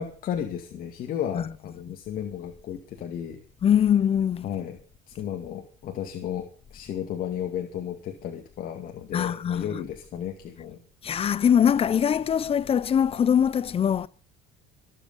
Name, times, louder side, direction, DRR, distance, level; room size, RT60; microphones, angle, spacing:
voice 1, 0.0-3.4 4.4-4.8 5.1-10.8, left 9 dB, 55° left, 2.3 m, -33 dB
voice 2, 3.6-4.4 9.1-9.8 11.0-14.1, left 8 dB, 35° left, 0.8 m, -22 dB
24.0 x 8.4 x 5.6 m
supercardioid pair, 105°, 18 cm